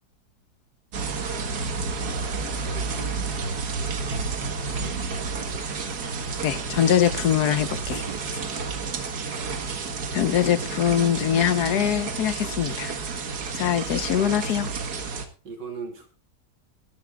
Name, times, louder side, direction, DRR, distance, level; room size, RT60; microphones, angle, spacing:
sound 1, 0.9-15.3, right 4 dB, 65° right, 2.0 m, -30 dB
voice 1, 2.5-3.1 7.9-8.4 9.6-10.0 15.4-16.1, right 5 dB, 85° right, 4.0 m, -40 dB
voice 2, 4.8-5.1 6.4-8.0 10.1-12.9 13.5-14.7, left 10 dB, 65° left, 1.5 m, -23 dB
20.5 x 11.5 x 2.4 m
omnidirectional pair, 1.9 m